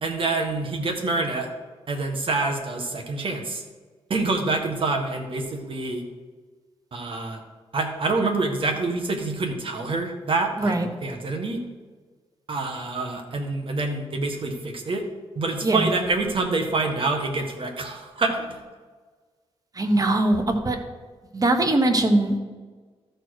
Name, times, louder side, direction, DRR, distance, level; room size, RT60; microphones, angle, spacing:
voice 1, 0.0-1.5 1.9-3.6 4.1-6.0 6.9-7.4 7.7-10.7 11.0-11.6 12.5-15.0 15.3-18.6, right 3 dB, 50° right, 3 dB, 1.6 m, -26 dB
voice 2, 19.7-20.8 21.3-22.4, right 2 dB, 30° right, 5 dB, 1.2 m, -21 dB
13.5 x 4.7 x 4.8 m, 1.4 s
cardioid pair, 80°, 11 cm